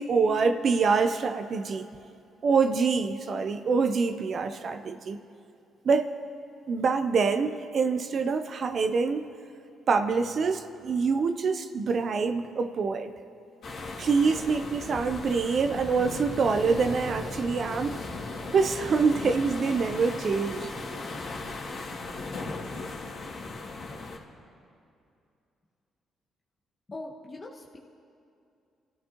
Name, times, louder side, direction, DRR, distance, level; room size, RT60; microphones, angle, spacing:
voice 1, 0.0-1.9 2.4-5.2 5.8-6.1 6.7-9.2 9.9-13.1 14.0-18.0 18.5-20.7, right 5 dB, 55° right, 8 dB, 0.7 m, -25 dB
sound 1, 13.6-24.2, left 3 dB, 70° left, 2.6 m, -37 dB
voice 2, 26.9-27.8, left 2 dB, 30° left, -2 dB, 1.4 m, -41 dB
28.5 x 14.0 x 3.0 m, 2.6 s
cardioid pair, 90°, 0 cm